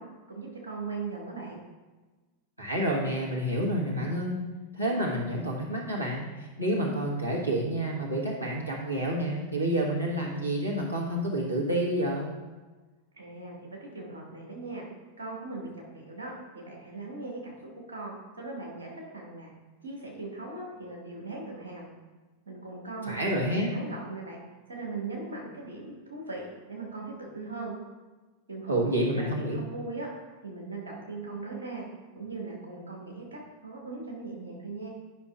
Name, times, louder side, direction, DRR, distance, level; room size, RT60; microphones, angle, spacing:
voice 1, 0.0-1.6 13.1-14.8 15.2-17.5 17.9-19.5 19.8-21.9 22.4-24.4 24.7-27.7 28.5-30.1 30.4-31.8 32.1-34.9, right 3 dB, 70° right, -2 dB, 1.7 m, -39 dB
voice 2, 2.6-4.5 4.7-12.3 23.1-23.7 28.7-29.6, right 1 dB, 90° left, -2 dB, 1.3 m, -29 dB
9.7 x 5.6 x 2.4 m, 1.2 s
figure-of-eight pair, 90°, 0 cm